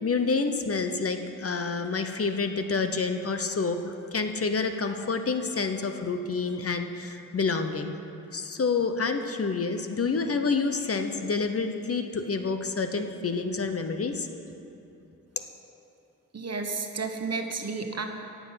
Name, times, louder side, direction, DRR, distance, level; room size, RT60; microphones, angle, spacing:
voice 1, 0.0-8.0 8.3-14.3, left 4 dB, 45° left, 7 dB, 0.8 m, -28 dB
voice 2, 16.3-18.0, right 4 dB, 50° right, 5 dB, 1.1 m, -32 dB
17.5 x 7.3 x 5.7 m, 2.8 s
wide cardioid pair, 90°, 33 cm